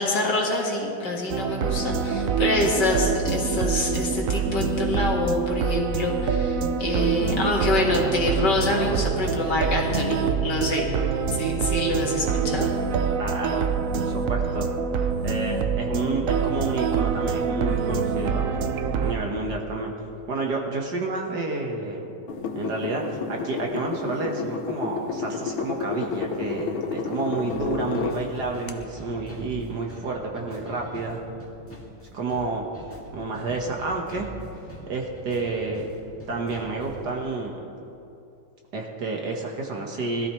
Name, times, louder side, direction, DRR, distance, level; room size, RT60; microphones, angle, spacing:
voice 1, 0.0-10.9 11.3-12.7, left 2 dB, 55° left, -2 dB, 2.4 m, -26 dB
sound 1, 1.3-19.1, right 6 dB, 75° right, 0.7 m, -25 dB
voice 2, 13.2-13.7 14.0-14.7 15.2-18.5 19.0-19.9 20.3-22.1 22.5-31.2 32.1-32.7 33.1-34.3 34.9-35.9 36.3-37.6 38.7-40.3, right 3 dB, 55° right, 0 dB, 1.9 m, -30 dB
sound 2, 22.3-28.2 28.7-28.8, left 5 dB, 75° left, 1.7 m, -31 dB
sound 3, 27.5-37.1, equal, 5° left, 1.9 m, -43 dB
21.5 x 13.5 x 3.2 m, 2.7 s
omnidirectional pair, 2.3 m